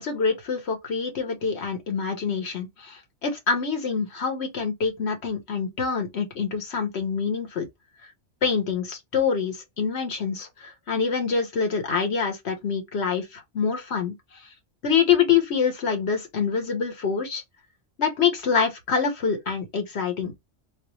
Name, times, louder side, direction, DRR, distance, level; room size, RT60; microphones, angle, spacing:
voice 1, 0.0-7.7 8.0-8.1 8.4-14.1 14.8-17.4 18.0-20.3, left 6 dB, 65° left, 1.2 m, -26 dB
4.2 x 2.1 x 2.9 m
omnidirectional pair, 1.2 m